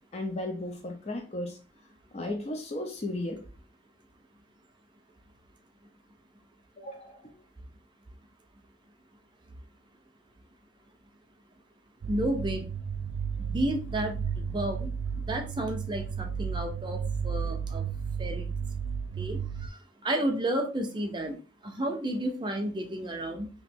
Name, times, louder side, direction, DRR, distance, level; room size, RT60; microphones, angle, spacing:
voice 1, 0.1-1.6 2.1-3.4 6.8-7.3, left 1 dB, 35° left, 2 dB, 0.5 m, -35 dB
sound 1, 12.0-19.7, right 6 dB, 90° right, 0.3 m, -33 dB
voice 2, 12.1-12.6 13.4-14.9 15.2-17.8 18.2-18.5 19.2-19.4 20.0-21.4 21.6-23.5, right 1 dB, 25° right, 3 dB, 0.5 m, -31 dB
2.9 x 2.5 x 3.4 m, 0.35 s
head